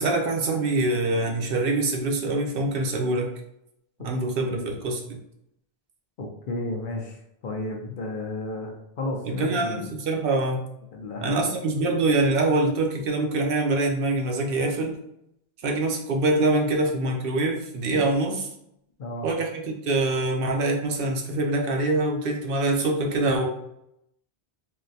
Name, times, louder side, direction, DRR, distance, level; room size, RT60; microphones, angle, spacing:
voice 1, 0.0-3.3 4.0-5.2 9.2-10.6 11.2-15.0 15.6-18.5 19.2-23.5, right 2 dB, 65° right, 2 dB, 0.7 m, -24 dB
voice 2, 6.2-9.9 10.9-11.4 19.0-19.3, left 2 dB, 60° left, 1 dB, 0.7 m, -33 dB
3.7 x 2.1 x 2.6 m, 0.78 s
omnidirectional pair, 1.0 m